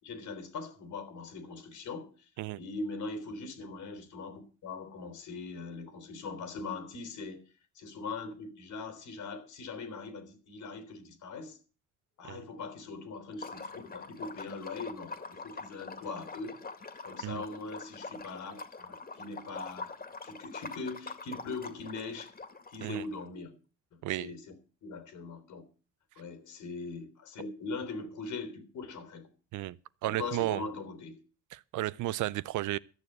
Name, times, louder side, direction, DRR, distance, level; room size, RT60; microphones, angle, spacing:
voice 1, 0.0-2.3 2.6-7.4 7.8-11.6 12.2-16.6 17.0-20.0 20.2-22.3 22.7-23.5 23.9-24.5 24.8-25.6 26.2-29.3 30.0-31.2, left 3 dB, 75° left, 3.6 m, -41 dB
Liquid, 13.3-23.2, left 4 dB, 30° left, 2.1 m, -44 dB
voice 2, 30.0-30.6 31.5-32.8, right 16 dB, 80° right, 0.6 m, -33 dB
14.0 x 7.0 x 7.9 m
cardioid pair, 90°, 30 cm